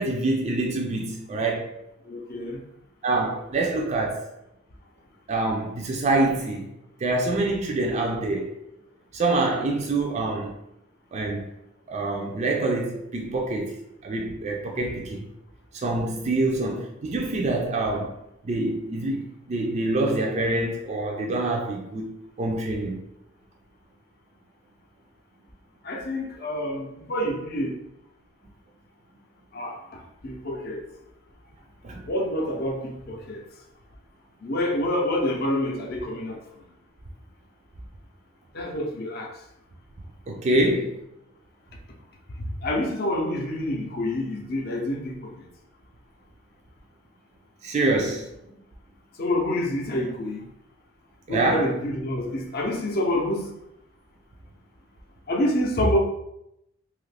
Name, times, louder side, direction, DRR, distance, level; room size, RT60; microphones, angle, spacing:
voice 1, 0.0-1.8 3.0-4.2 5.3-6.7 7.0-8.5 9.1-10.5 11.1-11.5 11.9-13.7 14.0-15.3 15.7-18.1 18.4-23.0 31.8-32.0 40.3-40.9 47.6-48.3 51.3-51.7, right 2 dB, 35° right, 0 dB, 0.3 m, -26 dB
voice 2, 2.0-2.6 25.8-27.8 29.5-30.9 32.0-33.4 34.4-36.6 38.5-39.4 42.4-45.5 49.1-50.4 51.3-53.5 55.3-56.0, left 1 dB, 50° left, 0 dB, 0.6 m, -27 dB
2.7 x 2.4 x 3.3 m, 0.84 s
head